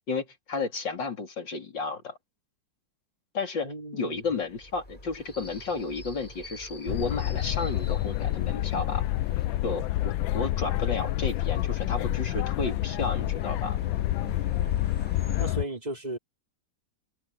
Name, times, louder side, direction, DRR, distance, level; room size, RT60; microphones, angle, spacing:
voice 1, 0.1-2.2 3.3-9.1 9.6-13.8, left 4 dB, 65° left, 4.0 m, -32 dB
voice 2, 3.6-4.3 15.4-16.2, right 1 dB, 20° right, 3.7 m, -35 dB
sound 1, 4.1-15.5, left 1 dB, 25° left, 7.9 m, -45 dB
sound 2, 6.9-15.7, left 15 dB, 80° left, 1.4 m, -28 dB
omnidirectional pair, 2.1 m